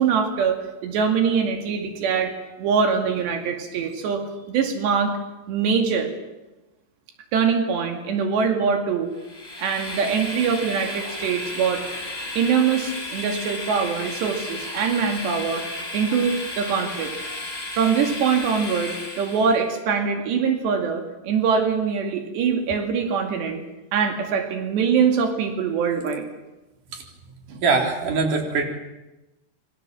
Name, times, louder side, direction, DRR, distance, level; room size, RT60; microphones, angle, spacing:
voice 1, 0.0-2.3 2.6-5.1 5.5-6.1 7.3-9.1 9.6-11.8 12.4-15.6 15.9-17.1 17.8-23.6 23.9-26.3 27.5-27.6, right 6 dB, 90° right, 4 dB, 4.6 m, -23 dB
Train, 9.2-19.6, left 2 dB, 10° left, 4.0 m, -33 dB
voice 2, 27.6-28.6, right 4 dB, 50° right, 2 dB, 5.0 m, -22 dB
27.5 x 23.5 x 7.6 m, 1.0 s
omnidirectional pair, 4.8 m